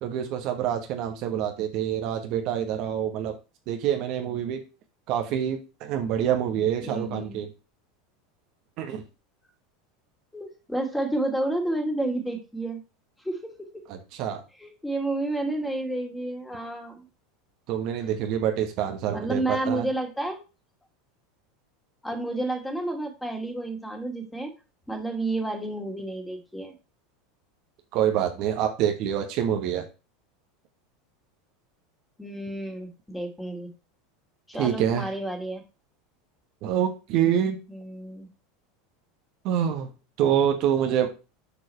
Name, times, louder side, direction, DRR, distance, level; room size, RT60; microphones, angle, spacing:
voice 1, 0.0-3.4 3.7-4.6 5.1-7.5 8.8-9.0 13.9-14.4 17.7-19.9 27.9-29.9 34.6-35.1 36.6-37.6 39.4-39.9 40.2-41.1, right 9 dB, 55° right, 5 dB, 1.4 m, -26 dB
voice 2, 6.8-7.4 10.3-12.8 13.2-13.8 14.6-17.0 19.1-20.4 22.0-24.5 24.9-26.7 32.2-33.7 34.5-35.6 37.7-38.3, right 2 dB, 5° left, 4 dB, 2.5 m, -30 dB
7.1 x 4.7 x 4.3 m, 0.30 s
hypercardioid pair, 85°, 0 cm